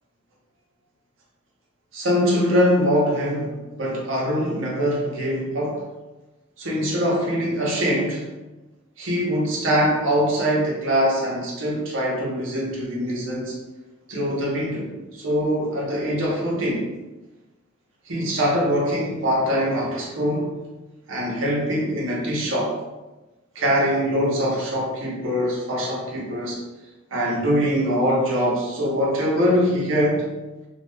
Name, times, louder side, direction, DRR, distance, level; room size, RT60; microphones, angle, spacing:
voice 1, 1.9-5.8 6.6-8.3 9.0-13.5 14.1-16.9 18.1-20.5 21.1-22.8 23.5-26.6 27.1-30.3, equal, 70° right, -4 dB, 0.8 m, -23 dB
2.3 x 2.1 x 3.2 m, 1.1 s
head